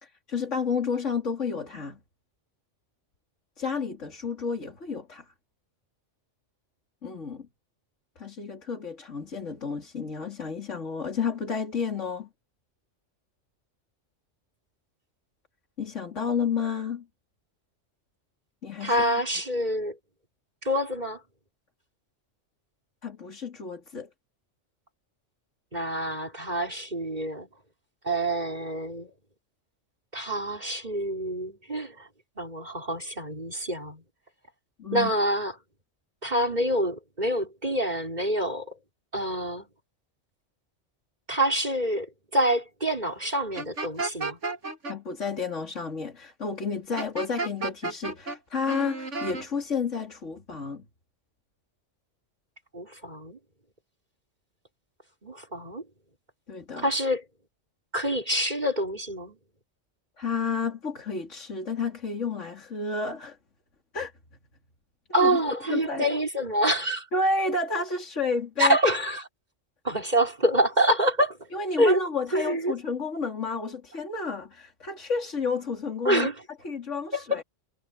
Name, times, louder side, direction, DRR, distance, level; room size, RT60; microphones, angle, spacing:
voice 1, 0.0-2.0 3.6-5.2 7.0-7.5 8.2-12.3 15.8-17.0 18.6-19.0 23.0-24.1 34.8-35.1 44.9-50.8 56.5-56.9 60.2-63.4 63.9-64.1 65.2-65.4 65.7-66.0 67.1-68.8 71.5-76.3 76.6-77.4, left 4 dB, 75° left, 3.4 m, -31 dB
voice 2, 18.8-20.0 20.6-21.2 25.7-27.5 28.0-29.1 30.1-32.1 32.4-34.0 34.9-35.5 36.2-38.8 39.1-39.7 41.3-44.4 52.7-53.4 55.2-55.8 56.8-57.2 57.9-59.4 65.1-67.1 68.6-69.2 69.8-71.5 71.8-72.0 72.3-72.7 76.0-76.3 77.1-77.4, right 1 dB, 35° right, 4.9 m, -26 dB
sound 1, 43.6-44.9 47.0-48.4 48.7-49.4, right 3 dB, 75° right, 3.3 m, -32 dB
omnidirectional pair, 1.3 m